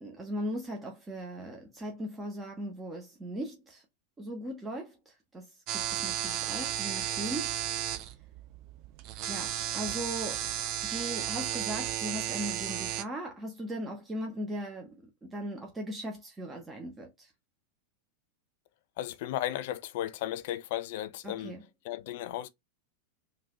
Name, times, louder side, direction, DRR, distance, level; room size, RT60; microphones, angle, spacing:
voice 1, 0.0-3.8 4.2-7.5 9.3-10.5 10.8-17.3 21.2-21.6, equal, 15° right, 1.1 m, -38 dB
sound 1, 5.7-13.0, right 11 dB, 40° right, 0.5 m, -34 dB
voice 2, 19.0-21.6 21.8-22.5, left 13 dB, 50° left, 0.5 m, -35 dB
4.0 x 2.7 x 3.7 m
figure-of-eight pair, 90°, 0 cm